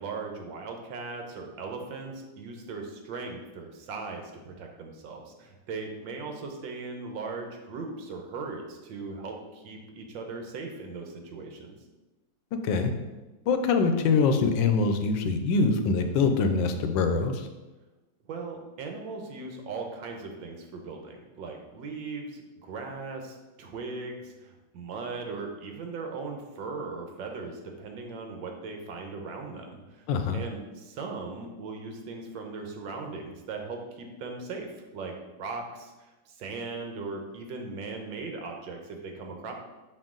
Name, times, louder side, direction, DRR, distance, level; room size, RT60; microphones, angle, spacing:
voice 1, 0.0-11.7 18.3-30.0 30.3-34.7 34.9-35.1 35.4-35.9 36.4-39.5, right 4 dB, 85° right, 3 dB, 1.6 m, -38 dB
voice 2, 12.5-12.9 13.5-17.5 30.1-30.4, left 4 dB, 80° left, 7 dB, 1.3 m, -24 dB
6.1 x 4.4 x 3.7 m, 1.1 s
omnidirectional pair, 2.1 m